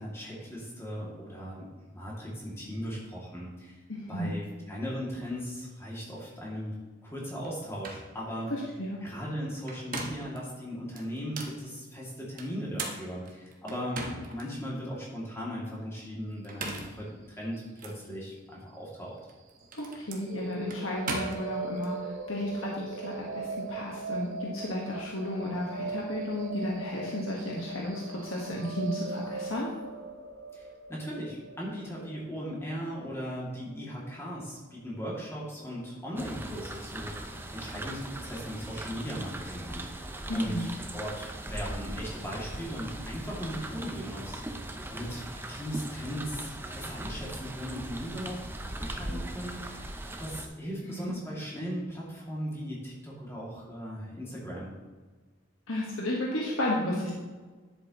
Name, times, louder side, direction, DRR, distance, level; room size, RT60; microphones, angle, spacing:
voice 1, 0.0-1.7 1.9-3.8 4.1-6.7 7.0-8.5 9.0-19.2 30.5-48.5 48.8-49.9 50.2-54.7, equal, 15° left, -5 dB, 2.4 m, -38 dB
voice 2, 3.9-4.3 8.5-9.0 19.7-29.7 40.3-40.6 50.9-51.1 55.7-57.1, left 1 dB, 85° left, -3 dB, 1.4 m, -33 dB
sound 1, 7.4-7.5 7.8-8.1 9.5-10.4 11.0-11.6 12.4-14.4 15.0-15.1 16.3-17.0 17.8-18.0 19.2-21.9, right 3 dB, 40° right, 1.3 m, -39 dB
sound 2, 20.2-34.2, right 3 dB, 75° right, 0.8 m, -40 dB
sound 3, 36.2-50.5, right 1 dB, 10° right, 0.5 m, -40 dB
10.5 x 8.0 x 3.0 m, 1.4 s
head